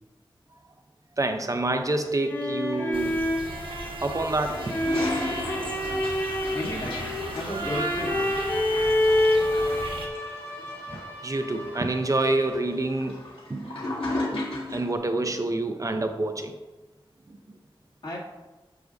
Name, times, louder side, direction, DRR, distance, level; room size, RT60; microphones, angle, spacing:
voice 1, 1.2-3.3 4.0-4.7 11.2-13.2 13.5-13.8 14.3-16.5 17.3-17.4, right 2 dB, 40° right, 6 dB, 0.6 m, -27 dB
sound 1, 2.1-12.7, left 1 dB, 25° left, 2.4 m, -28 dB
sound 2, 2.9-10.1, right 3 dB, 70° right, 1.2 m, -38 dB
Toilet flush, 4.3-14.9, left 2 dB, 90° left, 2.1 m, -36 dB
voice 2, 6.5-8.4 18.0-18.2, equal, 60° left, -6 dB, 2.6 m, -33 dB
9.8 x 7.2 x 2.7 m, 1.1 s
wide cardioid pair, 90°, 9 cm